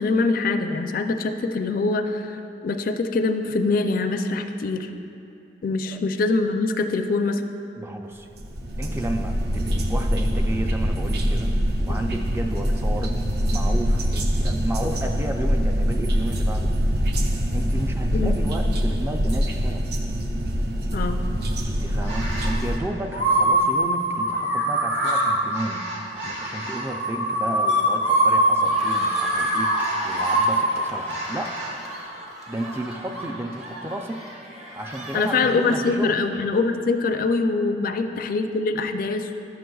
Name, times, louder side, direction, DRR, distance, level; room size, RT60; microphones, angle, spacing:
voice 1, 0.0-2.4 2.6-4.9 5.6-7.4 11.9-12.0 18.1-18.3 20.9-21.2 35.1-39.3, left 3 dB, 55° left, 6 dB, 0.4 m, -24 dB
voice 2, 7.8-8.3 8.8-11.5 11.9-13.2 13.5-16.7 17.5-19.8 21.7-25.9 26.2-29.8 30.0-31.6 32.5-34.2 34.7-36.2 37.9-38.1, right 1 dB, 15° right, 4 dB, 0.3 m, -32 dB
sound 1, 8.3-22.8, equal, 65° right, 0.6 m, -24 dB
sound 2, 22.0-22.6 23.1-31.7, right 1 dB, 85° right, 1.4 m, -23 dB
Cheering, 28.5-36.8, right 1 dB, 40° right, 1.1 m, -39 dB
11.5 x 7.6 x 2.3 m, 2.7 s
head